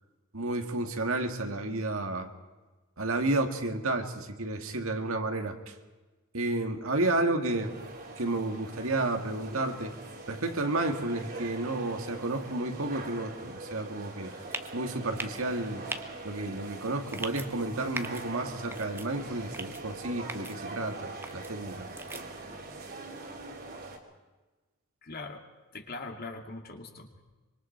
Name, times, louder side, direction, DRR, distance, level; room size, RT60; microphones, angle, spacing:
voice 1, 0.3-2.3 3.0-5.7 6.3-7.7 8.2-9.9 10.3-14.3 14.7-15.8 16.2-21.9, right 2 dB, 70° right, 5 dB, 2.2 m, -31 dB
sound 1, 7.6-24.0, right 2 dB, 45° right, 3.2 m, -43 dB
sound 2, 14.5-14.7 15.2-15.4 15.9-16.0 17.1-17.5 17.9-18.2 18.7-19.1 19.5-19.8 20.3-20.5 21.2-21.5 22.0-22.2, right 2 dB, 10° right, 1.2 m, -38 dB
voice 2, 25.0-25.4 25.7-27.2, left 3 dB, 45° left, 3 dB, 2.5 m, -41 dB
25.5 x 23.5 x 4.6 m, 1.2 s
head